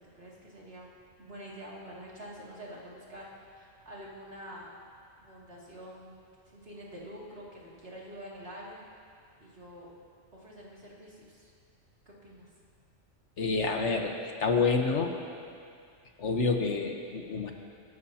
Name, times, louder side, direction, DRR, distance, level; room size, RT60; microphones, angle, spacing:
voice 1, 0.1-4.7 5.2-6.2 6.5-8.8 9.4-9.9 10.3-11.5 12.1-12.5, equal, 50° right, -5 dB, 2.7 m, -46 dB
voice 2, 13.4-15.2 16.2-17.5, left 4 dB, 65° left, 3 dB, 1.4 m, -28 dB
24.5 x 12.5 x 2.8 m, 2.3 s
omnidirectional pair, 1.3 m